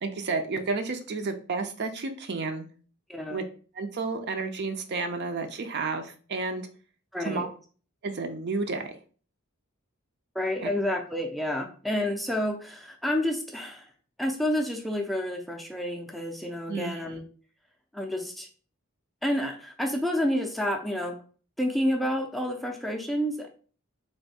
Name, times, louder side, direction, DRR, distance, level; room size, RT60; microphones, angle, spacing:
voice 1, 0.0-2.7 3.3-3.4 3.7-6.7 7.2-7.5 8.0-8.9 10.6-10.7 16.7-17.2, right 3 dB, 50° right, 6 dB, 0.5 m, -31 dB
voice 2, 3.1-3.4 7.1-7.5 10.3-13.9 14.2-17.2 17.9-18.5 19.2-21.2 21.6-23.5, left 1 dB, ahead, 2 dB, 0.4 m, -29 dB
3.4 x 2.7 x 4.1 m, 0.40 s
head